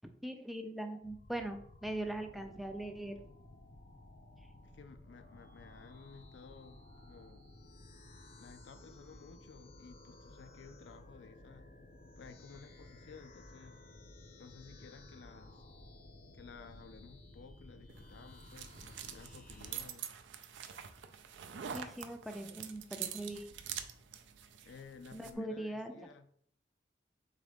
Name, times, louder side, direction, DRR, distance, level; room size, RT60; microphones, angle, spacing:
voice 1, 0.2-3.2 21.7-23.5 25.1-26.0, right 1 dB, ahead, 0.3 m, -41 dB
sound 1, 1.0-19.9, left 2 dB, 50° left, 0.7 m, -56 dB
voice 2, 4.6-7.5 8.4-11.7 12.2-13.8 14.4-15.7 16.3-20.1 24.6-26.3, left 5 dB, 80° left, 0.4 m, -55 dB
sound 2, 17.9-25.3, right 9 dB, 90° right, 0.4 m, -46 dB
3.7 x 3.5 x 3.4 m
head